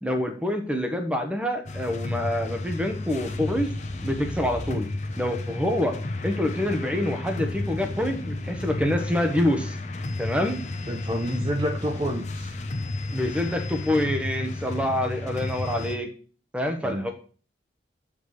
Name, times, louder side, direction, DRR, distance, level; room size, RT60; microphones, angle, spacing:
voice 1, 0.0-3.7 4.0-4.9 5.2-9.8 10.2-10.6 13.1-16.1 16.5-17.1, left 1 dB, 5° right, 5 dB, 1.2 m, -26 dB
sound 1, 1.7-16.0, left 2 dB, 40° left, 0.9 m, -32 dB
voice 2, 10.9-12.5 16.8-17.1, equal, 25° right, 3 dB, 0.9 m, -29 dB
7.8 x 5.1 x 6.5 m, 0.39 s
head